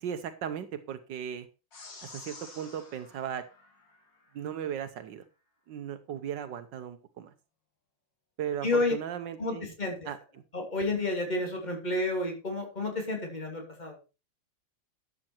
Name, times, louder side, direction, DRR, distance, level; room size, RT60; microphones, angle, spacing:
voice 1, 0.0-1.5 2.0-3.4 4.3-5.2 5.7-7.3 8.4-9.7 10.1-10.2, right 9 dB, 75° right, 9 dB, 1.5 m, -36 dB
sound 1, 1.7-4.4, left 3 dB, 80° left, 3.2 m, -50 dB
voice 2, 8.6-8.9 9.4-10.1 10.5-14.0, left 2 dB, 25° left, 2 dB, 2.9 m, -30 dB
12.0 x 7.7 x 4.4 m, 0.30 s
omnidirectional pair, 1.9 m